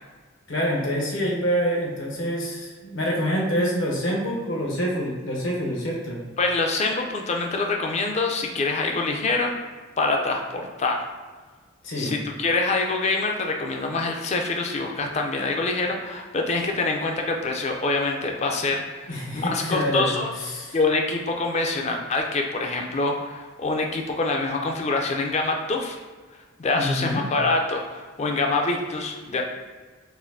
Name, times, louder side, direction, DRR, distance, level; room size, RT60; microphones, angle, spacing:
voice 1, 0.5-6.2 11.8-12.2 19.1-20.8 26.7-27.2, equal, 65° left, -1 dB, 0.8 m, -26 dB
voice 2, 6.4-9.5 10.0-11.0 12.0-20.3 20.7-26.0 26.6-29.4, left 3 dB, 35° left, 2 dB, 0.4 m, -25 dB
4.1 x 2.6 x 2.6 m, 1.4 s
head